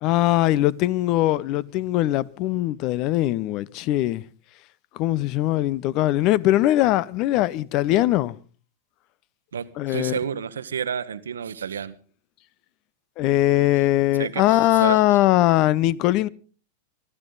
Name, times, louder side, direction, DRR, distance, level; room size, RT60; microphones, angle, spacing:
voice 1, 0.0-4.2 5.0-8.3 9.8-10.2 13.2-16.3, left 15 dB, 45° left, 0.7 m, -21 dB
voice 2, 9.5-11.9 14.2-15.2, right 7 dB, 80° right, 1.0 m, -30 dB
24.0 x 12.5 x 4.0 m
hypercardioid pair, 95°, 0 cm